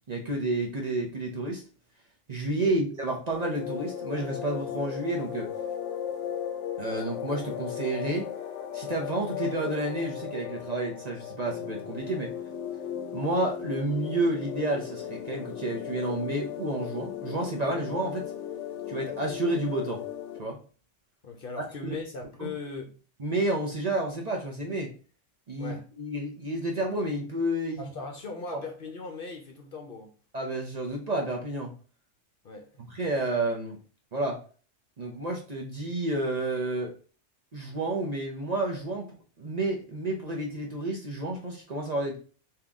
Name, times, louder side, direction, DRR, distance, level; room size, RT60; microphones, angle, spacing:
voice 1, 0.1-1.6 2.3-5.5 6.8-8.2 8.7-12.3 13.1-18.2 18.9-20.0 20.4-20.6 21.8-22.0 22.4-22.5 23.2-24.9 25.5-27.9 28.5-28.6 30.3-31.7 32.9-33.8 34.1-34.4 35.0-36.9 37.5-42.2, right 2 dB, 40° right, 0.7 m, -30 dB
voice 2, 2.5-2.8 21.2-22.9 25.6-25.8 27.8-30.1 32.4-32.9, left 3 dB, 55° left, 0.8 m, -39 dB
sound 1, 3.3-20.4, left 9 dB, 75° left, 0.9 m, -36 dB
3.7 x 2.9 x 3.6 m
omnidirectional pair, 1.3 m